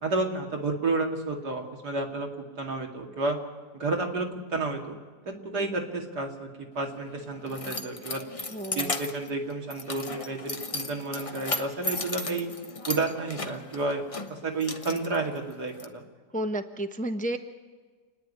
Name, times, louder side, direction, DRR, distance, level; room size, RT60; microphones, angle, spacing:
voice 1, 0.0-2.3 2.6-3.4 3.7-5.0 5.3-6.5 6.7-8.2 8.7-12.5 12.8-14.0 14.3-16.0, right 3 dB, 90° right, 2 dB, 2.9 m, -31 dB
Keys jangling, 6.8-15.8, left 2 dB, 25° left, 1.0 m, -36 dB
voice 2, 8.5-8.9 16.3-17.4, right 1 dB, 5° left, 7 dB, 0.7 m, -31 dB
28.5 x 9.9 x 10.0 m, 1.4 s
omnidirectional pair, 1.7 m